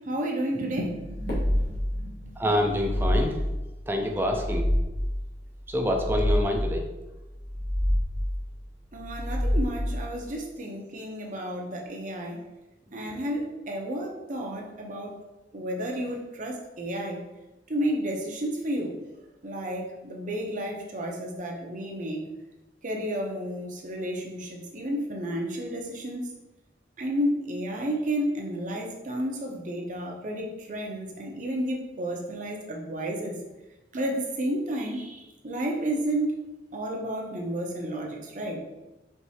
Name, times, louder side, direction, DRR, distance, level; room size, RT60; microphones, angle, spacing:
voice 1, 0.1-2.2 8.9-12.4 12.9-15.1 15.5-17.2 17.7-19.0 19.4-22.2 22.8-26.2 27.0-33.3 33.9-36.4 36.7-38.6, right 1 dB, 45° right, 0 dB, 0.7 m, -31 dB
sound 1, 1.0-2.1 2.6-3.7 4.2-5.2 5.8-6.9 7.3-8.4 9.0-10.1, equal, 40° left, 0.8 m, -27 dB
Fireworks, 1.2-3.6, equal, 65° left, 1.4 m, -41 dB
voice 2, 2.4-3.4 3.9-4.7 5.7-6.8, equal, 15° right, 2 dB, 0.5 m, -26 dB
4.6 x 3.3 x 2.8 m, 1.0 s
head